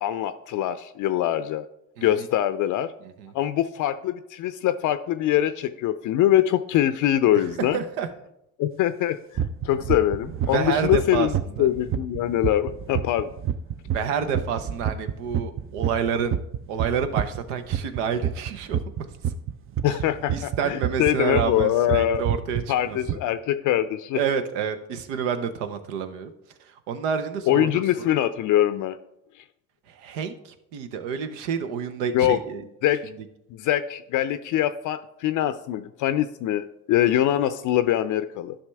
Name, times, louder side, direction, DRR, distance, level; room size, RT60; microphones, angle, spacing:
voice 1, 0.0-1.6 2.0-2.9 3.3-7.8 8.6-9.2 9.6-11.3 11.6-13.3 19.8-22.2 22.7-24.2 27.5-29.0 32.1-32.4 32.8-33.0 33.6-38.5, left 12 dB, 55° left, 12 dB, 0.5 m, -23 dB
voice 2, 7.7-8.1 10.4-11.3 11.6-11.7 13.9-16.4 16.7-18.8 20.3-23.0 24.1-26.3 26.9-27.8 29.9-32.6 33.0-33.2, right 7 dB, 85° right, 10 dB, 0.8 m, -28 dB
sound 1, 9.4-21.7 21.9-22.6 23.0-23.2, right 9 dB, 35° right, 0.5 m, -27 dB
11.0 x 5.7 x 3.3 m, 0.81 s
hypercardioid pair, 60°, 36 cm